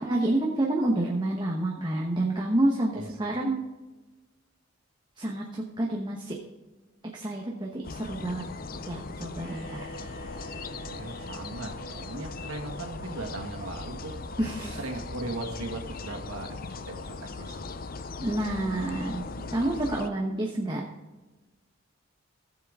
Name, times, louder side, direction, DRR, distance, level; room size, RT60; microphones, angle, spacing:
voice 1, 0.0-3.6 5.2-6.4 7.1-8.4 8.8-9.9 14.4-14.8 18.2-19.3 19.5-20.8, right 1 dB, 20° right, -1 dB, 1.0 m, -28 dB
sound 1, 7.8-20.1, left 3 dB, 45° left, 0.5 m, -39 dB
sound 2, 9.4-16.9, right 6 dB, 10° left, 3.7 m, -49 dB
voice 2, 10.8-14.4 14.7-17.8, right 2 dB, 90° right, 2 dB, 1.9 m, -38 dB
15.5 x 7.3 x 3.6 m, 1.2 s
head